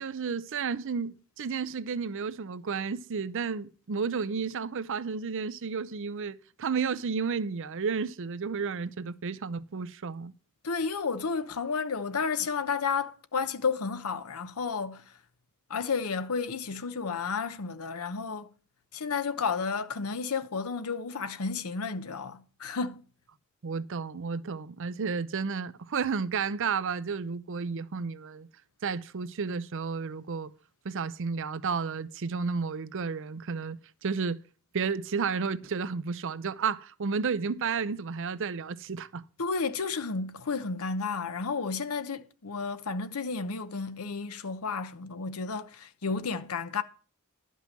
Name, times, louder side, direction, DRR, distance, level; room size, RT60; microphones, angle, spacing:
voice 1, 0.0-10.3 23.6-28.5 28.8-30.5 30.8-34.4 34.7-39.2, right 5 dB, 60° right, 0.6 m, -32 dB
voice 2, 10.6-15.0 15.7-18.5 18.9-23.0 39.4-46.8, left 5 dB, 85° left, 0.8 m, -32 dB
11.5 x 5.5 x 7.3 m
head